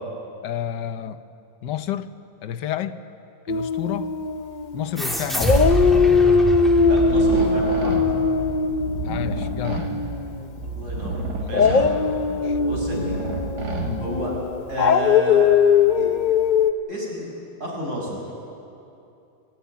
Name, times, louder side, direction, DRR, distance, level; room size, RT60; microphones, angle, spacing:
voice 1, 0.4-1.2 1.6-2.1 2.4-3.0 3.5-4.1 4.7-5.7 9.0-9.9 11.4-11.6 12.3-12.6 13.8-14.1, left 10 dB, 85° left, 11 dB, 1.5 m, -30 dB
Dog, 3.5-5.0 5.4-10.5 11.5-16.7, left 5 dB, 60° left, 0.4 m, -20 dB
sound 1, 5.0-8.0, equal, ahead, 2.5 m, -25 dB
voice 2, 6.8-8.0 10.6-11.9 12.6-13.2 14.0-14.3 14.7-15.5 16.0-16.1 16.9-17.3 17.6-18.2, right 1 dB, 45° right, -3 dB, 6.6 m, -30 dB
sound 2, 6.8-14.5, right 2 dB, 70° right, 3.0 m, -31 dB
27.5 x 16.0 x 9.4 m, 2.7 s
omnidirectional pair, 1.8 m